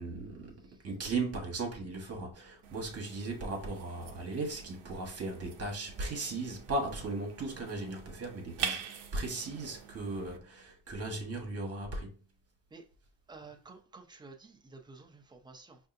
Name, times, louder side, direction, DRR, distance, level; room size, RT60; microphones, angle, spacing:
voice 1, 0.0-0.6 0.8-12.1, right 2 dB, 30° right, 1.3 m, -37 dB
sound 1, 2.6-10.4, right 7 dB, 55° right, 0.7 m, -44 dB
voice 2, 13.3-15.8, right 3 dB, 10° right, 0.3 m, -52 dB
5.3 x 2.6 x 2.5 m
cardioid pair, 135°, 50 cm